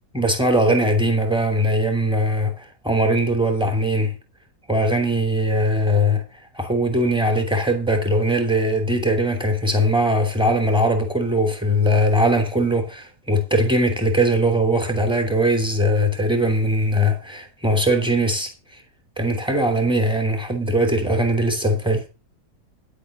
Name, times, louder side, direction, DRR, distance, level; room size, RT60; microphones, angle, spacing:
voice 1, 0.1-4.1 4.7-6.2 6.5-18.5 19.2-22.0, equal, 5° right, 2.9 m, -20 dB
10.5 x 8.4 x 6.6 m
omnidirectional pair, 1.8 m